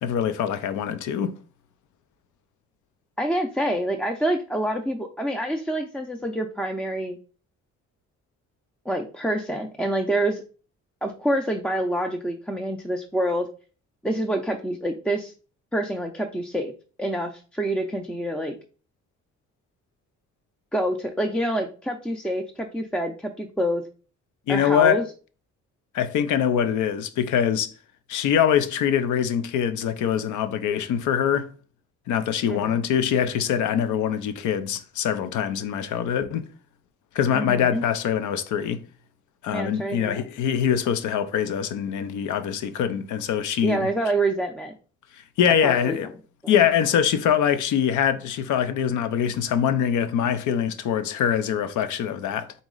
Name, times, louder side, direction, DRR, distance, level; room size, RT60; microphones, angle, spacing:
voice 1, 0.0-1.4 24.5-25.1 25.9-27.7 28.1-31.5 32.1-36.5 37.1-38.8 39.4-43.9 45.4-46.1 46.5-52.5, left 8 dB, 80° left, 0.6 m, -23 dB
voice 2, 3.2-7.2 8.9-10.4 11.0-13.5 14.0-15.3 15.7-16.7 17.0-18.6 20.7-23.8 24.5-25.0 32.5-32.8 37.3-37.8 39.5-40.2 43.6-44.7 45.6-46.0, right 1 dB, 5° left, 0.5 m, -27 dB
4.0 x 3.0 x 3.8 m
cardioid pair, 90°, 30 cm